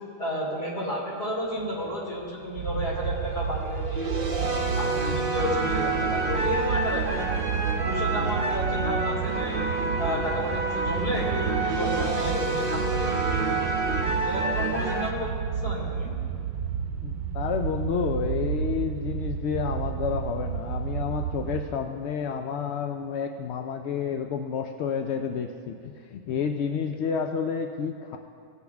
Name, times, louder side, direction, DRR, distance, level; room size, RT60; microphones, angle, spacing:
voice 1, 0.2-4.1 4.8-7.3 7.7-9.6 10.0-13.8 14.2-15.3 15.6-16.2, left 1 dB, 40° left, -6 dB, 3.3 m, -32 dB
sound 1, 1.6-2.8 3.5-15.1, right 3 dB, 40° right, 0.9 m, -28 dB
sound 2, 2.6-21.6, right 7 dB, 85° right, 1.3 m, -31 dB
voice 2, 17.0-28.2, left 6 dB, 70° left, 5 dB, 0.6 m, -30 dB
18.5 x 8.2 x 3.5 m, 2.4 s
omnidirectional pair, 1.6 m